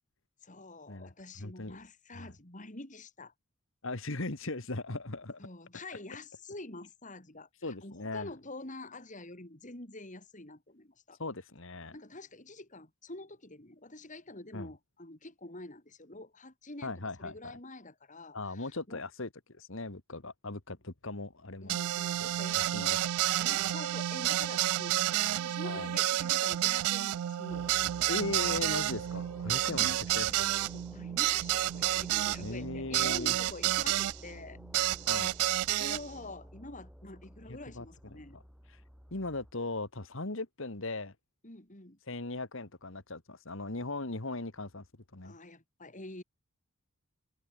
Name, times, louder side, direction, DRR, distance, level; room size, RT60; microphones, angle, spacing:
voice 1, 0.4-3.3 5.4-11.2 11.9-19.0 21.6-23.0 23.4-28.1 29.7-30.0 30.3-34.6 35.7-38.4 41.4-42.0 45.2-46.2, left 2 dB, 35° left, 3.2 m, -47 dB
voice 2, 1.4-1.8 2.1-2.3 3.8-5.4 7.6-8.3 11.2-12.0 14.5-14.7 16.8-17.6 18.3-21.8 22.2-23.0 23.2-23.3 25.6-25.9 28.1-30.5 32.4-33.4 35.1-35.3 37.5-37.9 38.1-38.2 39.1-41.1 42.1-44.8 45.1-45.3, left 2 dB, 60° left, 1.8 m, -38 dB
sound 1, 21.7-34.2 34.7-36.0, right 14 dB, 75° right, 0.3 m, -30 dB
sound 2, 27.5-39.5, equal, ahead, 7.9 m, -51 dB
head